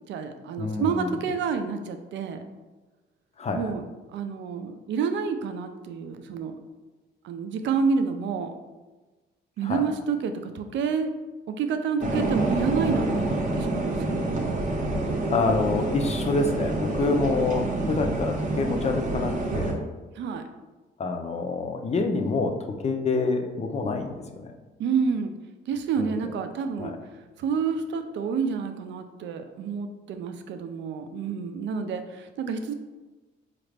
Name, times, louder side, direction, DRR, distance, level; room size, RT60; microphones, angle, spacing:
voice 1, 0.1-2.4 3.5-3.8 4.1-6.6 7.2-8.5 9.6-11.1 11.5-14.4 20.2-20.4 24.8-25.3 25.7-26.9 27.4-32.7, right 5 dB, 70° right, 7 dB, 0.4 m, -29 dB
voice 2, 0.6-1.1 3.4-3.7 9.6-9.8 15.3-19.8 21.0-22.5 22.8-24.5 26.8-27.0, left 3 dB, 35° left, 5 dB, 0.5 m, -27 dB
sound 1, 12.0-19.7, right 2 dB, 40° right, 0.7 m, -27 dB
4.1 x 2.5 x 3.2 m, 1.2 s
cardioid pair, 90°, 20 cm